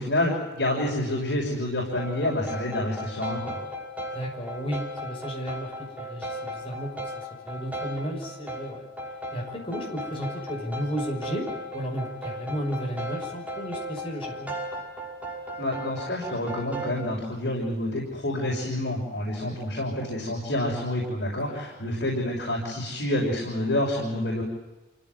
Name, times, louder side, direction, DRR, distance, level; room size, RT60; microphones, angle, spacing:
voice 1, 0.0-3.6 15.6-24.4, left 1 dB, 80° left, -2 dB, 6.6 m, -28 dB
sound 1, 2.0-17.1, equal, 10° right, 5.7 m, -36 dB
voice 2, 4.1-8.8 9.3-11.5 11.7-14.5 19.4-19.6 21.4-21.6, equal, 30° left, 0 dB, 6.2 m, -33 dB
28.5 x 17.0 x 9.7 m, 1.1 s
head